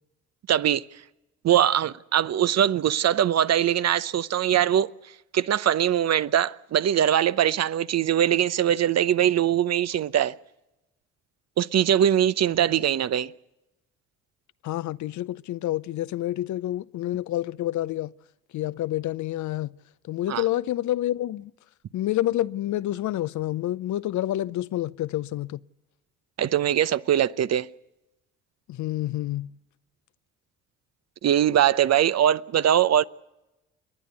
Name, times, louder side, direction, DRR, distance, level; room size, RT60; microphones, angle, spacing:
voice 1, 0.5-0.8 1.4-4.9 5.3-10.3 11.6-13.3 20.3-20.4 26.4-27.7 31.2-33.0, right 10 dB, 50° right, 0.8 m, -22 dB
voice 2, 14.6-18.1 18.5-19.7 20.1-21.5 21.9-25.6 28.7-29.5, left 14 dB, 55° left, 0.7 m, -28 dB
29.5 x 11.0 x 8.2 m
hypercardioid pair, 55°, 34 cm